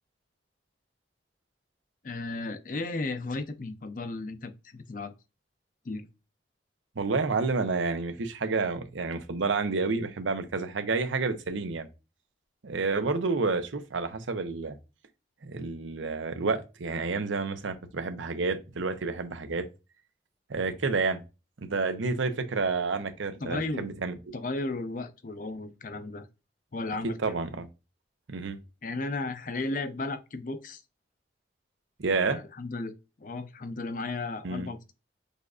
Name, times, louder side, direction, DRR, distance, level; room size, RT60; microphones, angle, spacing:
voice 1, 2.0-5.1 5.8-6.1 23.4-23.9 24.3-26.3 26.7-27.4 28.8-30.8 32.2-34.9, left 2 dB, 45° left, 0.5 m, -34 dB
voice 2, 7.0-11.9 12.6-14.8 15.4-19.6 20.5-21.2 21.6-24.1 27.2-27.7 28.3-28.6 32.0-32.4 34.4-34.7, right 4 dB, 90° right, 0.7 m, -29 dB
6.6 x 2.5 x 2.4 m
head